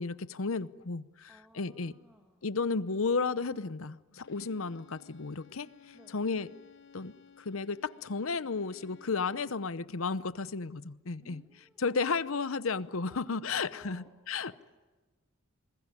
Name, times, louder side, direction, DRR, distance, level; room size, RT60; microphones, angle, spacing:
voice 1, 0.0-2.0 2.4-6.5 6.9-11.4 11.8-14.6, left 4 dB, 80° left, 16 dB, 0.8 m, -33 dB
voice 2, 1.3-2.4 5.9-6.2 11.2-12.1 13.1-14.6, equal, 5° right, 2 dB, 2.5 m, -59 dB
Bowed string instrument, 4.2-9.6, left 5 dB, 60° left, 1.2 m, -58 dB
27.5 x 21.5 x 9.8 m, 1.3 s
head